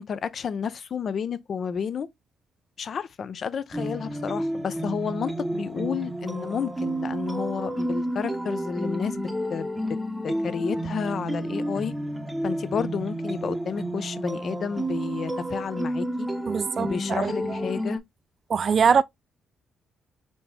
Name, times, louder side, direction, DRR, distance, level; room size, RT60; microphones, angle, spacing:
voice 1, 0.0-2.1 2.8-9.7 10.2-11.9 12.4-16.3 16.8-18.0, left 6 dB, 55° left, 0.5 m, -31 dB
sound 1, 3.7-18.0, right 1 dB, 5° right, 0.7 m, -31 dB
voice 2, 16.5-17.6 18.5-19.0, right 6 dB, 45° right, 0.3 m, -23 dB
4.3 x 2.8 x 3.3 m
cardioid pair, 90°, 0 cm